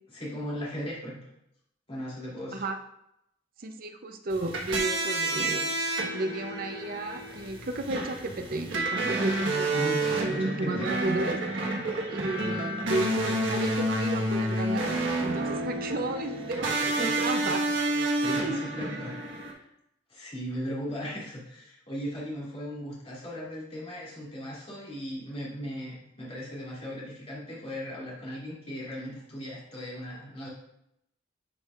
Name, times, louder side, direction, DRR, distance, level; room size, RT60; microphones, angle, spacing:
voice 1, 0.1-1.2 1.9-2.6 9.7-10.0 10.3-10.9 17.0-17.1 18.1-19.6 20.1-30.5, equal, 30° left, -7 dB, 2.6 m, -37 dB
voice 2, 3.6-5.7 6.1-11.4 12.1-17.7 18.4-18.7, right 2 dB, 50° right, 6 dB, 0.6 m, -33 dB
sound 1, 4.3-19.5, right 2 dB, 70° right, 1.4 m, -29 dB
10.5 x 5.5 x 2.4 m, 0.80 s
head